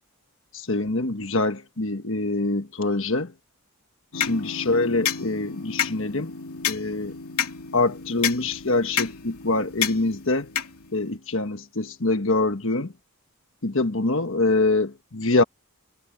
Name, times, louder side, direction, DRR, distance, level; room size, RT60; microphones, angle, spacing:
voice 1, 0.5-3.3 4.1-6.3 6.7-7.1 7.7-10.5 10.9-12.9 13.6-15.4, left 2 dB, 65° left, 1.4 m, -24 dB
sound 1, 4.1-11.2, left 8 dB, 85° left, 2.9 m, -31 dB
head